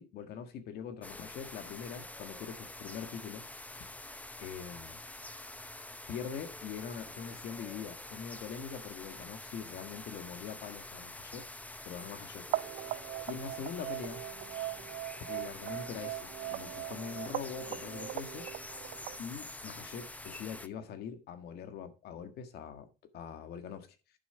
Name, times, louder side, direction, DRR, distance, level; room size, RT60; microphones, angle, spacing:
voice 1, 0.0-3.4 3.8-3.9 4.4-5.0 6.1-11.4 11.8-12.5 13.3-14.2 15.3-18.5 19.2-24.0, left 7 dB, 70° left, 1.7 m, -43 dB
sound 1, 1.0-20.7, left 2 dB, 10° left, 0.7 m, -46 dB
sound 2, 12.5-19.2, right 18 dB, 80° right, 0.5 m, -40 dB
11.0 x 6.7 x 4.5 m
cardioid pair, 110°, 17 cm